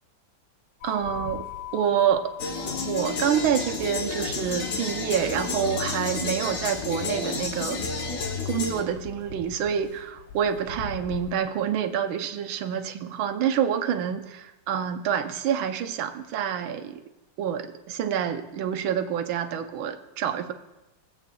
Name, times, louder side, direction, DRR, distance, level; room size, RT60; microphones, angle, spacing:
sound 1, 0.8-11.3, left 7 dB, 90° left, 1.8 m, -42 dB
voice 1, 0.8-1.5 1.7-2.3 2.8-7.8 8.5-17.0 17.4-20.5, right 8 dB, 75° right, 8 dB, 1.5 m, -27 dB
sound 2, 2.4-8.8, left 4 dB, 50° left, 1.2 m, -30 dB
21.0 x 8.2 x 2.3 m, 0.99 s
omnidirectional pair, 2.3 m